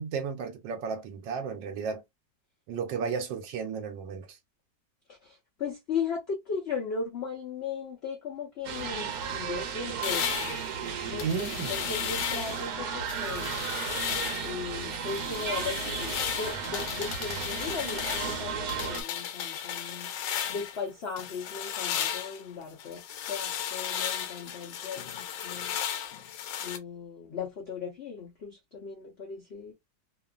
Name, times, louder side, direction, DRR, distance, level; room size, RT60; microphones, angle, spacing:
voice 1, 0.0-2.0 2.7-4.4 11.2-11.7, right 6 dB, 85° right, 1.4 m, -33 dB
voice 2, 5.1-10.7 11.1-13.7 14.4-20.1 20.5-23.0 23.3-25.8 26.6-29.7, left 5 dB, 55° left, 0.7 m, -37 dB
sound 1, 8.6-19.0, right 6 dB, 70° right, 1.2 m, -34 dB
sound 2, 10.0-12.7 13.1-14.6 14.9-20.8 21.2-26.8, left 9 dB, 90° left, 1.3 m, -35 dB
2.9 x 2.4 x 2.3 m
omnidirectional pair, 1.9 m